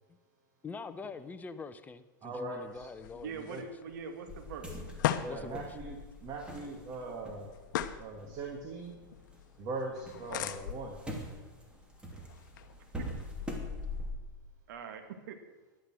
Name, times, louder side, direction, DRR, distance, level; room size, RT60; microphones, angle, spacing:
voice 1, 0.6-3.7 5.2-5.8, left 4 dB, 15° left, 11 dB, 0.8 m, -44 dB
voice 2, 2.2-2.8 3.5-3.6 5.2-7.5 8.0-9.0 9.6-11.0, right 3 dB, 35° right, 1 dB, 2.3 m, -40 dB
sound 1, 2.6-14.0, left 11 dB, 65° left, 0.9 m, -41 dB
voice 3, 3.2-4.8 13.0-13.1 14.7-15.4, right 6 dB, 65° right, 6 dB, 2.1 m, -42 dB
sound 2, 4.3-9.4 9.7-14.1, left 1 dB, 10° right, 2.8 m, -43 dB
11.5 x 11.0 x 6.2 m, 1.2 s
hypercardioid pair, 120°, 11 cm